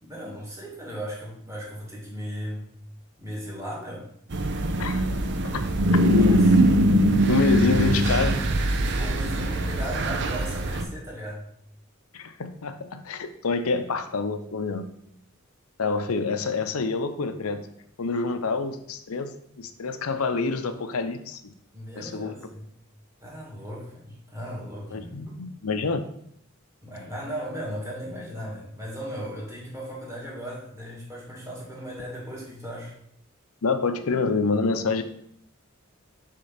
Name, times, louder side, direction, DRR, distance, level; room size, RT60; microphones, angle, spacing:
voice 1, 0.0-2.7 3.2-4.1 6.1-6.6 8.9-11.5 21.7-22.7 23.2-25.3 26.8-32.9, equal, 15° right, -4 dB, 2.2 m, -37 dB
sound 1, 4.3-10.8, right 1 dB, 55° right, 0.7 m, -22 dB
voice 2, 7.3-8.4 12.1-14.9 15.8-17.6 18.0-19.3 19.6-21.4 22.0-22.3 24.9-26.0 33.6-35.0, left 4 dB, 80° left, 9 dB, 0.6 m, -27 dB
6.5 x 3.7 x 5.8 m, 0.71 s
head